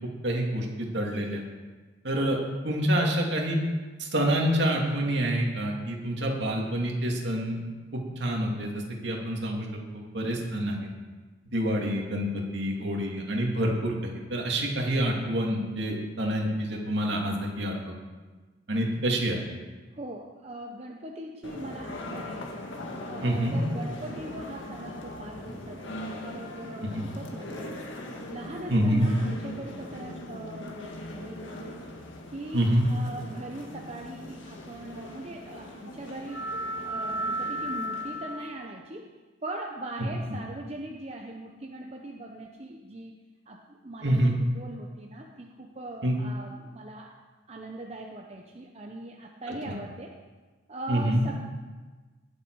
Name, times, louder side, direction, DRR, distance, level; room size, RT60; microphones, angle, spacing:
voice 1, 0.2-1.4 2.0-2.4 2.6-3.6 4.0-7.6 7.9-9.7 10.1-10.8 11.5-17.7 18.7-19.4 23.2-23.6 26.8-27.0 28.7-29.1 32.5-32.8 44.0-44.3 46.0-46.1 50.9-51.2, right 1 dB, 65° right, 0 dB, 2.5 m, -27 dB
voice 2, 19.9-22.5 23.1-27.9 28.2-31.8 32.3-36.4 36.8-39.0 39.4-43.1 43.5-47.1 47.5-50.1 50.7-51.4, right 1 dB, 35° right, 0 dB, 0.8 m, -40 dB
sound 1, 21.4-38.6, equal, 90° left, 1.6 m, -38 dB
19.5 x 7.2 x 4.8 m, 1.3 s
head